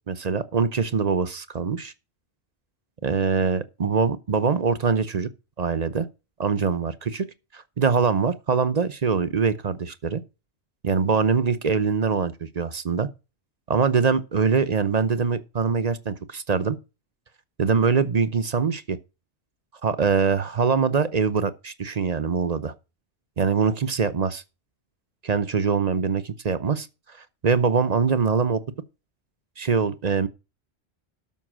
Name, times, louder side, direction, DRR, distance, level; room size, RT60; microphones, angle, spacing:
voice 1, 0.1-1.9 3.0-5.3 5.6-6.1 6.4-7.3 7.5-10.2 10.8-13.1 13.7-16.8 17.6-19.0 19.8-22.7 23.4-24.4 25.2-26.9 27.4-28.6 29.6-30.3, right 5 dB, 40° right, 0.7 m, -23 dB
12.5 x 5.4 x 6.1 m
omnidirectional pair, 1.1 m